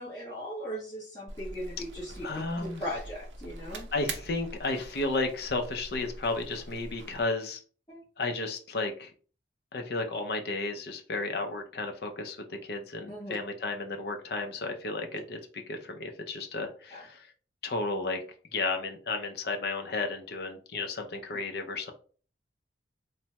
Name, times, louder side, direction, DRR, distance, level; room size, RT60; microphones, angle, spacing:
voice 1, 0.0-2.2 2.6-3.9 7.9-8.0 13.1-13.3 16.9-17.1, equal, 20° left, -9 dB, 0.9 m, -38 dB
sound 1, 1.3-7.2, right 2 dB, 90° right, 0.5 m, -43 dB
voice 2, 2.2-2.8 3.9-7.6 8.2-9.1 9.7-15.4 15.7-17.2 17.6-18.2 18.5-21.9, left 3 dB, 60° left, 4 dB, 0.5 m, -33 dB
3.2 x 2.0 x 2.8 m, 0.41 s
head